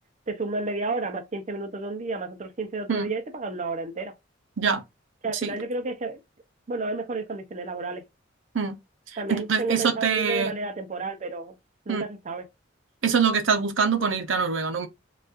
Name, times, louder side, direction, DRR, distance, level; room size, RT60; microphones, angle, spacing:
voice 1, 0.3-4.1 5.2-6.2 6.7-8.0 9.2-11.6 11.9-12.5, right 3 dB, 35° right, 0.6 m, -31 dB
voice 2, 9.3-10.5 11.9-12.0 13.0-14.9, right 5 dB, 75° right, 0.7 m, -24 dB
4.0 x 2.4 x 2.4 m
head